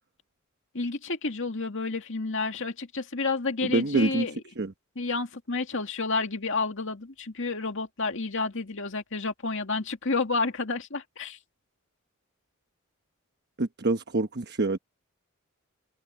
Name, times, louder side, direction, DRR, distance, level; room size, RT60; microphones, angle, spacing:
voice 1, 0.7-4.3 5.0-11.4, left 3 dB, 60° left, 2.3 m, -30 dB
voice 2, 3.6-4.3 4.6-4.7 13.6-14.8, right 2 dB, 50° right, 1.1 m, -26 dB
head